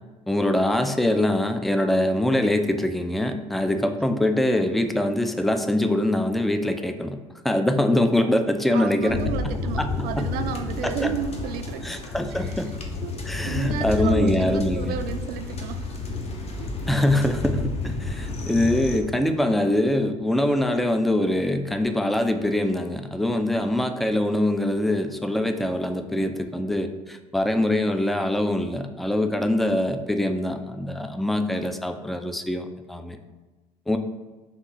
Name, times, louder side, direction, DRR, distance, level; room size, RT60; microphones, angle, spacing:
voice 1, 0.3-7.2 7.4-9.2 9.8-10.3 10.8-11.1 11.8-12.7 13.3-15.0 16.9-33.2 33.9-34.0, left 1 dB, ahead, 7 dB, 0.3 m, -23 dB
voice 2, 8.7-11.9 12.3-12.6 13.0-13.1 13.4-16.0 16.6-16.7 23.5-23.8, right 8 dB, 60° right, 8 dB, 0.4 m, -32 dB
sound 1, 9.1-19.0, left 3 dB, 35° left, 0.8 m, -30 dB
3.7 x 2.7 x 4.0 m, 1.3 s
hypercardioid pair, 70°, 17 cm